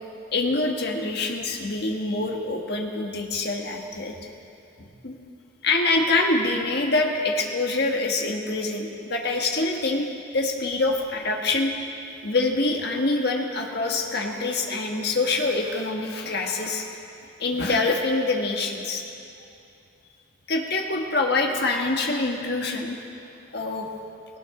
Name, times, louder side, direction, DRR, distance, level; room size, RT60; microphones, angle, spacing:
voice 1, 0.3-4.1 4.8-5.2 5.6-10.1 10.3-11.7 12.2-16.8 17.4-19.0 20.5-23.0 23.5-23.9, left 3 dB, 55° left, 1 dB, 1.5 m, -25 dB
18.5 x 18.0 x 3.8 m, 2.7 s
head